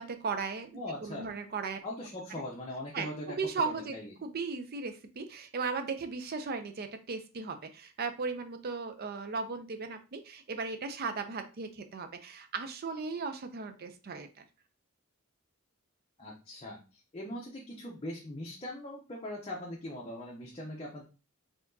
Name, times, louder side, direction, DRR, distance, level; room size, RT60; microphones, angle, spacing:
voice 1, 0.0-1.8 2.9-14.4, right 4 dB, 50° right, 8 dB, 0.5 m, -37 dB
voice 2, 0.7-1.3 1.8-3.4 3.6-4.1 16.2-21.0, left 1 dB, 30° left, -2 dB, 0.7 m, -41 dB
4.2 x 2.9 x 2.7 m, 0.32 s
head